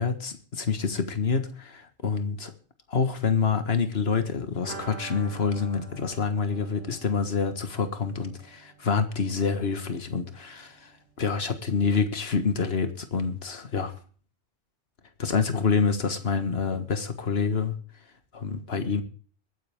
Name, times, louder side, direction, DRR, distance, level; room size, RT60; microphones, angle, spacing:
voice 1, 0.0-2.5 2.9-10.9 11.2-13.9 15.2-17.7 18.3-19.0, left 5 dB, 65° left, 1.7 m, -27 dB
sound 1, 4.6-10.2 10.5-10.6 10.9-11.0, right 4 dB, 65° right, 3.7 m, -46 dB
22.5 x 9.6 x 3.5 m
omnidirectional pair, 1.1 m